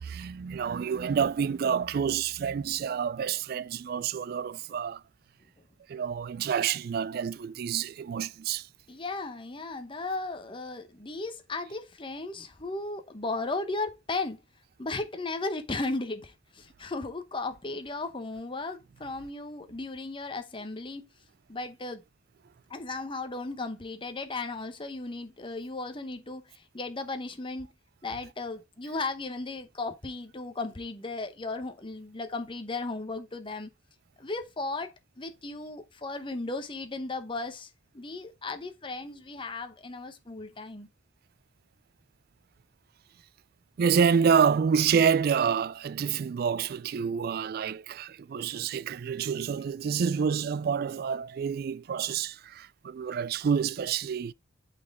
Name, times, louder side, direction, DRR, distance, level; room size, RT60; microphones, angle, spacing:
voice 1, 0.0-5.0 5.9-8.7 43.8-54.3, right 7 dB, 55° right, 0.3 m, -28 dB
voice 2, 8.9-14.4 14.8-21.0 21.5-22.0 22.7-27.7 28.0-33.7 34.2-40.9, left 3 dB, 25° left, 0.9 m, -36 dB
8.5 x 4.3 x 3.5 m
head